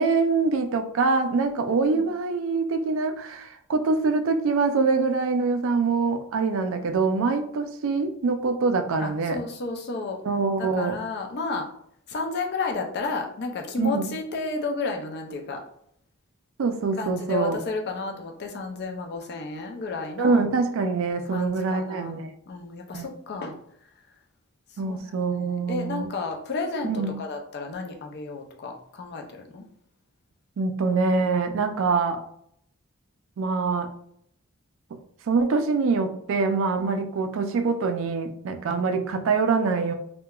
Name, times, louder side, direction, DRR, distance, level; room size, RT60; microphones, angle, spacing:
voice 1, 0.0-9.4 10.3-11.0 13.8-14.1 16.6-17.6 20.2-22.3 22.9-23.1 24.8-26.1 26.8-27.2 30.6-32.2 33.4-33.9 35.3-39.9, right 4 dB, 60° right, 7 dB, 0.3 m, -24 dB
voice 2, 1.4-2.1 7.2-7.3 9.0-10.2 10.6-11.7 12.1-15.6 17.0-20.4 21.3-23.5 24.8-25.0 25.3-29.6 36.8-37.0, left 3 dB, 50° left, 3 dB, 0.4 m, -32 dB
2.8 x 2.1 x 2.3 m, 0.68 s
head